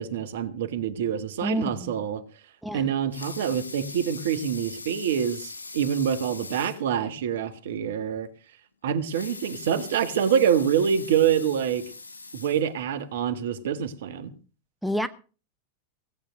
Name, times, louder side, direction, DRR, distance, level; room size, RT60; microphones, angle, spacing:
voice 1, 0.0-2.2 2.7-8.3 8.8-11.9 12.3-14.3, right 8 dB, 60° right, 1.5 m, -26 dB
voice 2, 1.4-1.9 2.6-2.9 14.8-15.1, equal, ahead, 0.9 m, -28 dB
Water tap faucet / Sink (filling or washing) / Liquid, 2.9-6.9 7.3-7.4 7.8-7.9 8.9-13.1 13.7-13.8, left 3 dB, 80° left, 2.1 m, -41 dB
17.0 x 8.6 x 6.4 m
figure-of-eight pair, 90°, 0 cm